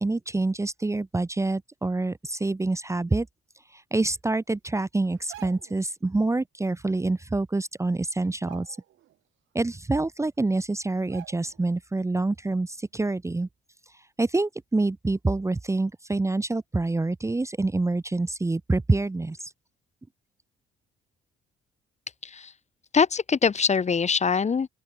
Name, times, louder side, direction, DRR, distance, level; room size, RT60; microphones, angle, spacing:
voice 1, 0.0-3.3 3.7-8.8 9.5-13.5 14.2-19.5, right 2 dB, 15° right, 0.9 m, -26 dB
sound 1, 5.1-5.9 7.3-7.4 7.7-8.0 8.3-9.2 9.6-9.7 10.4-10.5 11.1-11.7 12.1-12.2, right 13 dB, 80° right, 6.5 m, -48 dB
voice 2, 22.9-24.7, left 5 dB, 35° left, 1.4 m, -23 dB
open air
cardioid pair, 90°, 20 cm